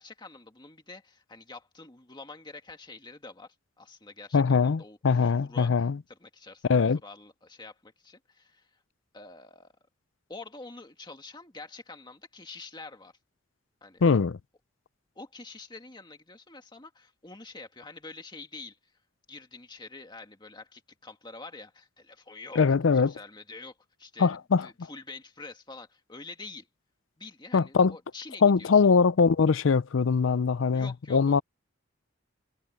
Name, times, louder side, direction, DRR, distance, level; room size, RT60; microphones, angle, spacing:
voice 1, 0.0-5.7 6.1-8.8 9.1-9.8 10.3-13.1 13.8-14.0 15.2-18.8 19.3-22.6 22.9-26.7 27.2-28.7 30.7-31.4, left 3 dB, 25° left, 1.9 m, -46 dB
voice 2, 4.3-6.0 6.7-7.0 14.0-14.4 22.6-23.1 24.2-24.7 27.5-27.9 28.4-31.4, left 5 dB, 70° left, 0.5 m, -22 dB
head